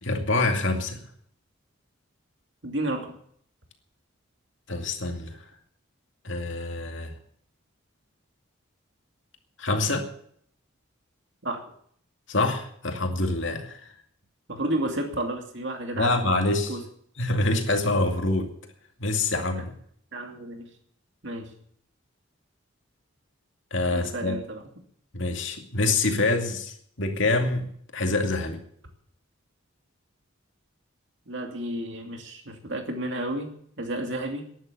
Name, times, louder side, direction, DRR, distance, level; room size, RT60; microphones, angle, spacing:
voice 1, 0.0-1.0 4.7-5.4 6.2-7.1 9.6-10.1 12.3-13.8 15.9-16.8 17.2-18.5 19.0-19.7 23.7-24.4 25.1-27.7 27.9-28.6, left 2 dB, 60° left, 4 dB, 2.4 m, -26 dB
voice 2, 2.6-3.2 11.4-11.6 14.5-16.2 16.7-16.8 20.1-20.7 21.2-21.5 23.9-24.6 31.3-33.5 33.8-34.4, right 1 dB, 60° right, 4 dB, 2.6 m, -31 dB
11.5 x 11.0 x 8.3 m, 0.64 s
head